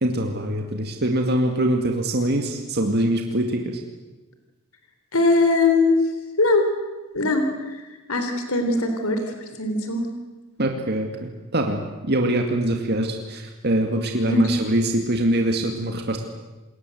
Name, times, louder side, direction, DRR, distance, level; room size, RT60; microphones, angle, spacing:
voice 1, 0.0-3.8 10.6-11.8 12.1-16.2, right 1 dB, 50° right, 3 dB, 2.3 m, -23 dB
voice 2, 5.1-6.0 6.4-6.7 7.1-9.2 9.6-10.1 14.3-14.4, left 3 dB, 85° left, 6 dB, 3.8 m, -21 dB
28.0 x 22.0 x 7.9 m, 1.1 s
head